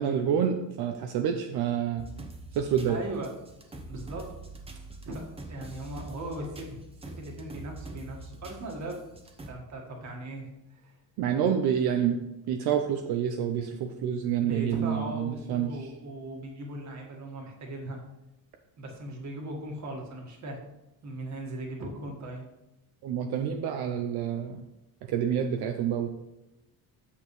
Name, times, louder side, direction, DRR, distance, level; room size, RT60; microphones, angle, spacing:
voice 1, 0.0-2.0 2.5-3.0 11.2-12.2 12.5-15.7 23.0-24.6 25.1-26.1, right 8 dB, 80° right, 4 dB, 0.7 m, -28 dB
sound 1, 2.0-9.5, right 2 dB, 15° right, 0.9 m, -44 dB
voice 2, 2.9-3.3 3.9-4.3 5.0-5.2 5.5-6.8 7.1-9.0 9.5-11.0 14.4-18.0 18.8-20.6 21.0-22.5, right 1 dB, 45° right, 1 dB, 1.8 m, -38 dB
8.6 x 6.8 x 3.2 m, 0.95 s
cardioid pair, 140°, 38 cm